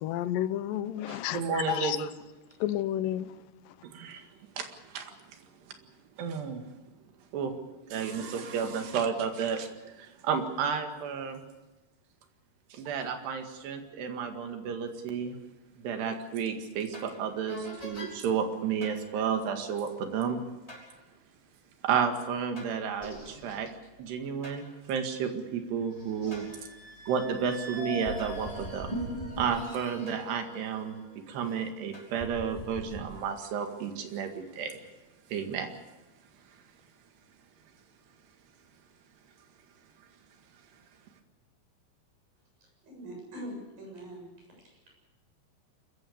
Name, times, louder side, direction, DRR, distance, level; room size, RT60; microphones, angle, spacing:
voice 1, 0.0-2.0 2.6-3.3, left 12 dB, 75° left, 13 dB, 2.2 m, -31 dB
voice 2, 1.1-2.1 3.9-4.3 4.6-5.5 6.2-6.7 7.3-7.6 7.9-11.4 12.7-15.4 15.8-20.4 21.8-23.7 24.0-26.5 27.1-29.0 29.4-31.0 31.3-34.8 35.3-35.7, right 7 dB, 90° right, 6 dB, 4.1 m, -32 dB
sound 1, 16.9-17.1 17.5-18.1 18.8-19.0 20.7-20.9 22.6-24.6 25.2-25.3 25.9-31.6 31.9-33.0, equal, 10° left, 5.8 m, -41 dB
voice 3, 42.8-44.3 44.6-44.9, equal, 60° right, 0 dB, 9.2 m, -43 dB
26.0 x 15.0 x 8.5 m, 1.1 s
omnidirectional pair, 4.6 m